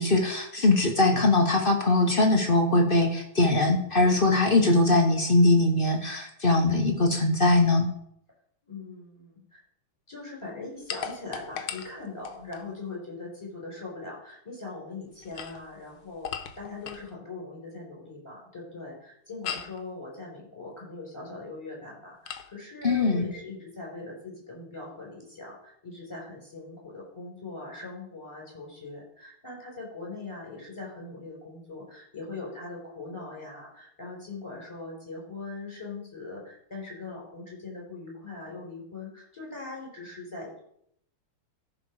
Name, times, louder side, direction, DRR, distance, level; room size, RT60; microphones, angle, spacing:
voice 1, 0.0-7.9 22.8-23.3, left 2 dB, 35° left, 3 dB, 1.0 m, -21 dB
voice 2, 8.6-9.6 10.1-16.3 16.5-40.6, left 3 dB, 10° left, -2 dB, 4.9 m, -41 dB
sound 1, 10.9-12.7 15.1-17.1 19.4-19.8 22.3-22.5, left 8 dB, 75° left, 1.7 m, -38 dB
14.5 x 6.0 x 4.8 m, 0.71 s
omnidirectional pair, 2.4 m